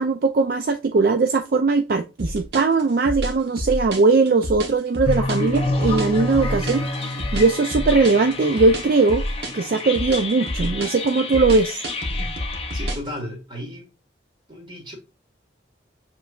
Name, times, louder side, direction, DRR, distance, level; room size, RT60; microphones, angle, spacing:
voice 1, 0.0-9.2 9.5-11.8, right 3 dB, 50° right, 0.4 m, -20 dB
sound 1, 2.2-13.1, equal, 70° right, 1.1 m, -28 dB
sound 2, 5.0-12.9, left 2 dB, 30° left, 0.5 m, -29 dB
voice 2, 12.7-13.9 14.5-15.0, equal, 25° right, 1.7 m, -34 dB
7.0 x 3.1 x 2.4 m
head